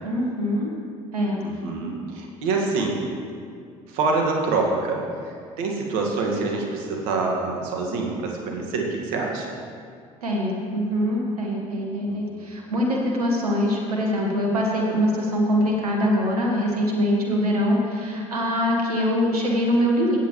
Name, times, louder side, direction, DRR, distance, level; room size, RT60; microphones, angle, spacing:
voice 1, 0.0-0.7 1.1-1.4 10.2-20.2, equal, 90° right, -1 dB, 1.4 m, -23 dB
voice 2, 1.4-3.0 3.9-5.0 5.6-9.5 12.1-12.2, right 3 dB, 70° right, 0 dB, 1.8 m, -26 dB
16.0 x 8.0 x 3.1 m, 2.2 s
hypercardioid pair, 65°, 19 cm